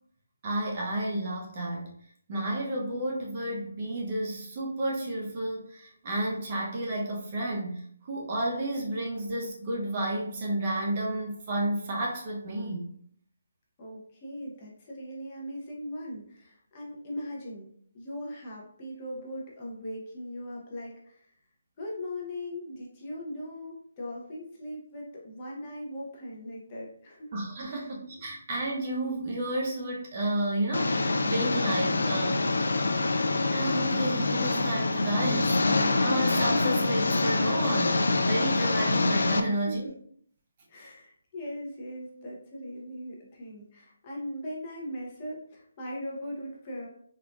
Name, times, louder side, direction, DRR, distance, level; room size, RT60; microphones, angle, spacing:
voice 1, 0.4-1.9 2.3-12.9 27.3-32.5 33.5-39.9, right 1 dB, 25° right, -2 dB, 0.5 m, -31 dB
voice 2, 13.8-17.7 17.9-21.3 21.8-27.3 27.7-27.9 39.5-39.9 40.7-46.9, equal, 20° left, -4 dB, 0.6 m, -39 dB
Engine, 30.7-39.4, left 3 dB, 80° left, 0.3 m, -25 dB
3.7 x 2.4 x 2.2 m, 0.62 s
hypercardioid pair, 175°, 0 cm